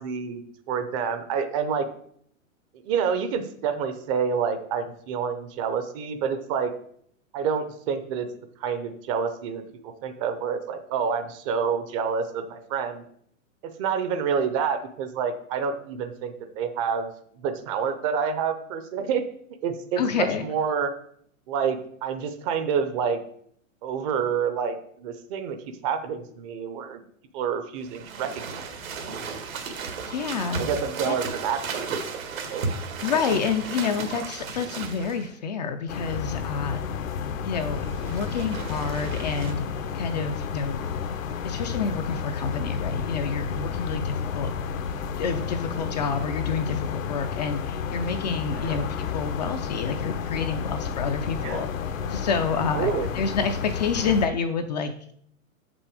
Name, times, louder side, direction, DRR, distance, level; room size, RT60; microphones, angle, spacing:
voice 1, 0.0-1.9 2.8-6.7 7.3-8.3 8.6-13.0 13.6-17.1 17.4-19.2 19.6-20.9 21.5-23.2 23.8-25.6 25.8-27.0 27.3-28.7 29.1-29.2 30.6-31.9 32.5-32.7 44.3-44.5 48.5-48.9 51.4-51.6 52.7-53.1, right 6 dB, 25° right, 9 dB, 0.6 m, -28 dB
voice 2, 20.0-20.5 30.0-30.7 31.1-31.2 33.0-36.8 37.4-39.6 39.9-40.8 41.4-44.5 45.2-51.7 52.1-55.1, left 5 dB, 35° left, 7 dB, 0.4 m, -28 dB
sound 1, 27.8-35.3 37.6-39.5, right 5 dB, 85° right, 1.8 m, -34 dB
sound 2, 35.9-54.3, left 6 dB, 75° left, 1.0 m, -31 dB
6.4 x 6.1 x 4.8 m, 0.65 s
hypercardioid pair, 150°, 40 cm